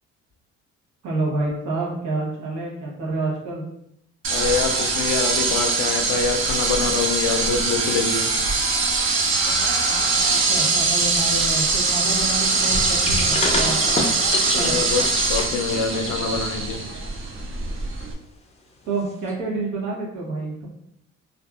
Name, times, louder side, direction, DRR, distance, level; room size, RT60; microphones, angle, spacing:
voice 1, 1.0-3.6 10.5-13.8 14.5-14.7 18.8-20.7, right 3 dB, 75° right, -4 dB, 1.0 m, -28 dB
sound 1, 4.2-18.1, right 3 dB, 45° right, 0.5 m, -22 dB
voice 2, 4.3-8.3 14.5-16.8, left 5 dB, 80° left, 6 dB, 0.4 m, -25 dB
sound 2, 12.7-16.4 16.7-17.0 19.3-19.4, left 2 dB, 20° left, 0.4 m, -28 dB
2.6 x 2.4 x 2.3 m, 0.76 s
cardioid pair, 90°, 30 cm